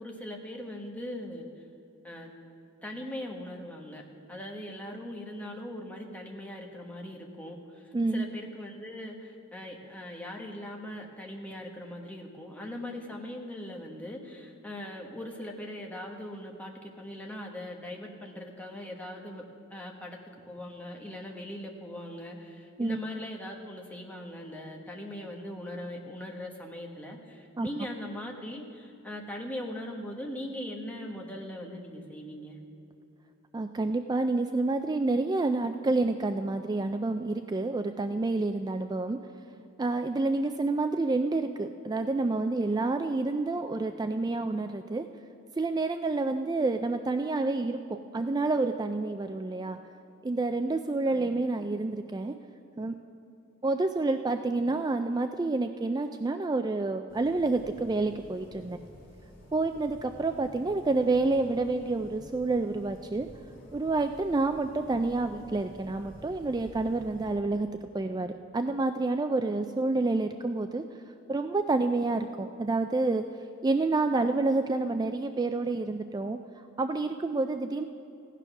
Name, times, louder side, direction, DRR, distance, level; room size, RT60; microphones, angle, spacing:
voice 1, 0.0-1.5 2.0-2.3 2.8-4.0 4.3-19.4 19.7-20.2 20.5-32.6 51.1-51.4 54.5-54.7 60.6-60.9, left 1 dB, 5° left, 0 dB, 1.3 m, -40 dB
voice 2, 7.9-8.3 22.8-23.0 27.6-27.7 33.5-39.2 39.8-45.1 45.6-49.8 50.2-52.4 52.8-53.0 53.6-58.8 59.5-63.3 63.7-67.7 67.9-70.8 71.3-73.2 73.6-76.4 76.8-77.8, right 3 dB, 20° right, 7 dB, 0.3 m, -28 dB
sound 1, 57.1-67.3, equal, 45° left, 3.1 m, -51 dB
16.0 x 9.1 x 6.0 m, 2.7 s
head